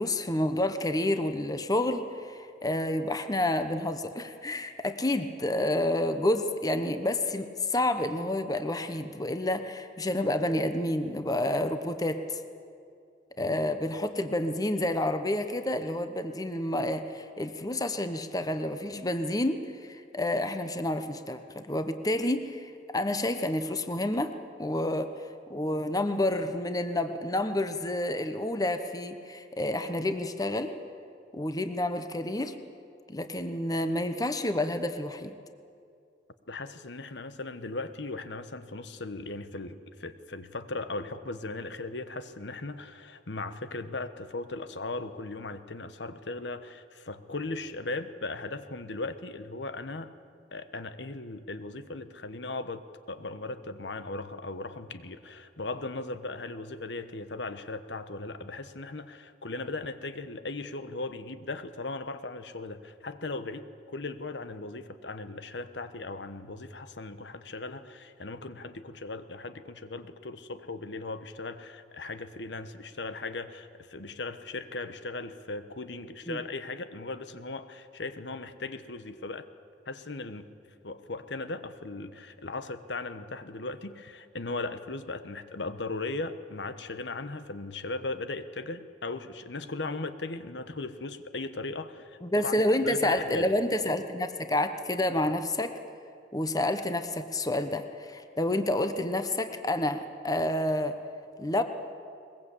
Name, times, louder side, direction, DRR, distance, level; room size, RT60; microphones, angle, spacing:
voice 1, 0.0-12.4 13.4-24.3 24.6-25.1 25.5-30.7 31.3-32.5 33.1-35.3 76.3-76.4 92.2-95.7 96.3-101.0 101.4-101.6, left 1 dB, 20° left, 8 dB, 1.1 m, -29 dB
voice 2, 36.5-50.1 50.5-79.5 79.9-80.5 80.8-92.5 92.9-93.5, left 3 dB, 75° left, 11 dB, 1.2 m, -38 dB
21.5 x 21.5 x 8.5 m, 2.4 s
head